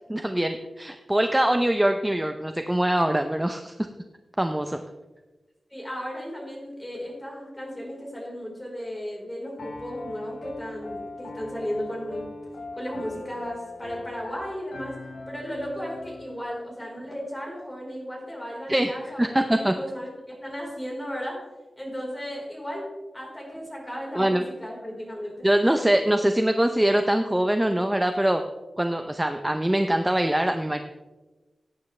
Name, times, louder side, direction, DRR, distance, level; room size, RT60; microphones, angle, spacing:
voice 1, 0.1-3.9 4.4-4.8 18.7-18.9 19.2-19.7 24.1-24.4 25.4-28.4 28.8-30.8, right 1 dB, 10° right, 6 dB, 0.6 m, -23 dB
voice 2, 5.7-12.3 12.7-15.0 15.3-21.5 21.8-22.9 23.1-25.5, equal, 10° left, -3 dB, 4.1 m, -35 dB
Piano, 9.6-16.4, left 3 dB, 65° left, 1.5 m, -40 dB
17.5 x 9.4 x 3.2 m, 1.2 s
wide cardioid pair, 145°, 0 cm